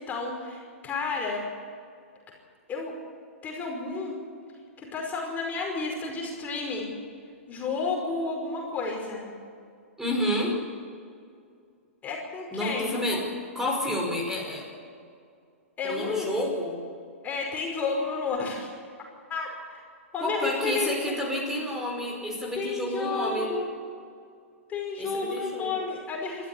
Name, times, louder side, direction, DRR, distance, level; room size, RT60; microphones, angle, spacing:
voice 1, 0.0-1.4 2.7-2.9 3.4-4.2 4.8-6.9 7.5-9.3 12.0-13.2 15.8-16.3 17.2-18.7 19.3-19.8 20.1-21.1 22.5-23.7 24.7-26.5, left 4 dB, 20° left, 0 dB, 5.1 m, -31 dB
voice 2, 10.0-10.5 12.5-13.2 13.6-14.7 15.8-16.8 20.2-23.5 25.0-25.7, left 1 dB, 5° right, 0 dB, 5.3 m, -30 dB
28.5 x 13.5 x 8.7 m, 2.3 s
hypercardioid pair, 120°, 7 cm